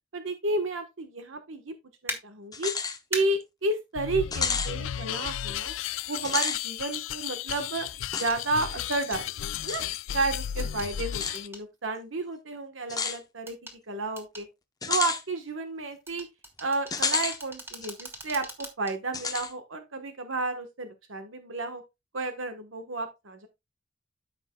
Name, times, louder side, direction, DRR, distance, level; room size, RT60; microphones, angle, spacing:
voice 1, 0.1-1.7 2.0-2.7 3.1-5.7 6.1-7.9 8.2-9.3 9.6-9.8 10.1-13.6 13.9-14.5 14.9-16.3 16.6-21.8 22.1-23.5, right 2 dB, 80° right, 1.2 m, -31 dB
sound 1, 2.1-2.2 3.1-3.2 5.2-5.3 8.1-8.4 8.9-9.2 10.6-10.9 11.3-11.6 13.5-13.8 14.2-14.5 16.1-18.9 19.4-19.5, right 1 dB, 10° right, 1.7 m, -39 dB
sound 2, 2.5-3.0 3.4-3.5 4.3-4.7 6.2-6.6 8.1-8.3 9.7-9.8 11.1-11.4 12.9-13.2 14.8-15.2 16.9-17.4 17.8-17.9 19.1-19.5, left 5 dB, 20° left, 0.8 m, -30 dB
sound 3, 3.9-11.5, left 10 dB, 75° left, 0.4 m, -34 dB
13.5 x 5.3 x 2.2 m
head